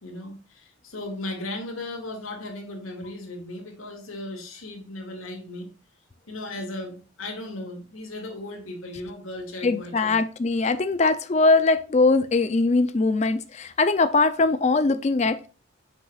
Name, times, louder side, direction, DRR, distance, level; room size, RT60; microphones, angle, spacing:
voice 1, 0.0-5.8 6.3-10.2, left 2 dB, 85° left, 2.3 m, -36 dB
voice 2, 9.6-15.5, left 3 dB, 35° left, 0.4 m, -21 dB
7.6 x 6.1 x 2.4 m
head